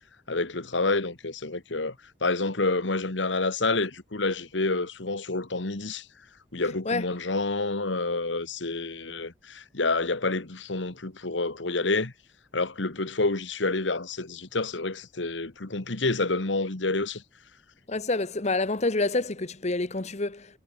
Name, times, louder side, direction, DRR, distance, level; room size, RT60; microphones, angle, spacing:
voice 1, 0.3-1.9 2.2-6.1 6.5-12.1 12.5-17.2, left 3 dB, 70° left, 1.7 m, -28 dB
voice 2, 17.9-20.6, left 2 dB, 35° left, 1.1 m, -27 dB
head